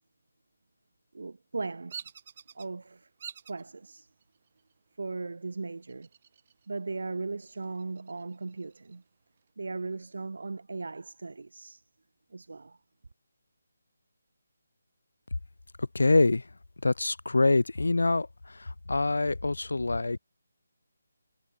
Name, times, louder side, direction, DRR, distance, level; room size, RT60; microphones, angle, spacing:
voice 1, 1.1-2.0 2.5-3.1 3.5-4.1 5.0-6.1 6.7-9.0 9.6-11.8 12.3-12.8, right 3 dB, 70° right, 0.8 m, -37 dB
Bird vocalization bird call bird song, 1.9-2.7 3.2-3.6 4.2-4.7 5.9-6.7 7.0-7.1 7.6-9.0, right 7 dB, 40° right, 1.6 m, -46 dB
voice 2, 15.9-16.4 16.8-18.3 18.9-20.2, left 2 dB, 80° left, 0.4 m, -24 dB
figure-of-eight pair, 160°, 0 cm